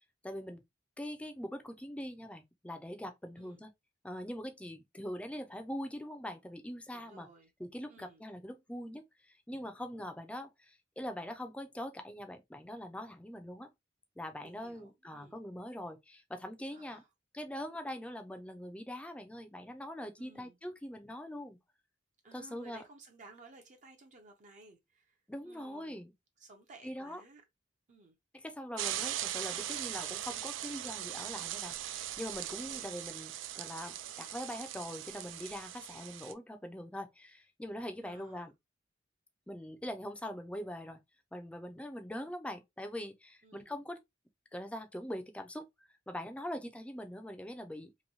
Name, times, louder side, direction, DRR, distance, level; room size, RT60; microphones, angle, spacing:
voice 1, 0.2-0.6 1.0-3.7 4.0-7.3 7.6-13.7 14.2-17.0 17.3-21.6 22.3-22.8 25.3-26.1 26.8-27.2 28.3-38.5 39.5-41.0 41.3-44.0 44.5-45.6 46.1-47.9, equal, 5° left, 0.4 m, -43 dB
voice 2, 6.9-7.5 7.9-8.2 14.4-15.4 16.7-17.1 20.2-20.6 22.2-26.0 26.4-27.4 27.9-28.2 32.6-32.9 38.0-38.5 43.4-43.7, right 2 dB, 40° right, 0.6 m, -57 dB
sound 1, 28.8-36.3, right 12 dB, 90° right, 0.3 m, -40 dB
3.0 x 2.6 x 2.6 m
head